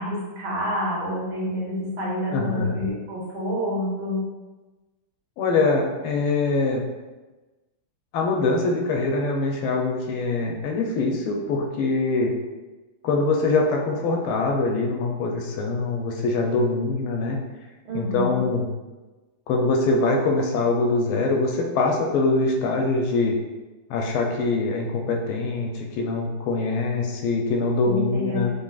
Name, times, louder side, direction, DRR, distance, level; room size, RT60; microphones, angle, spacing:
voice 1, 0.0-4.2 17.9-18.4 27.8-28.4, left 1 dB, 75° right, -6 dB, 1.9 m, -28 dB
voice 2, 2.3-2.8 5.4-6.8 8.1-12.3 13.0-17.4 17.9-18.7 19.5-23.3 23.9-28.5, left 3 dB, 80° left, 1 dB, 1.3 m, -23 dB
3.8 x 3.5 x 2.3 m, 1.2 s
omnidirectional pair, 2.4 m